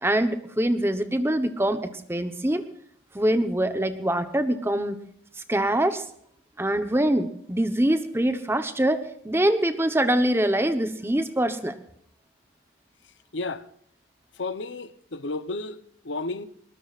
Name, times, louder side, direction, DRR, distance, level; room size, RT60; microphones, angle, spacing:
voice 1, 0.0-2.6 3.1-5.0 5.5-6.0 6.6-9.0 9.2-11.7, right 1 dB, 10° right, 1.0 m, -24 dB
voice 2, 13.3-13.7 14.4-16.5, left 3 dB, 70° left, 0.8 m, -32 dB
21.5 x 19.5 x 2.5 m
head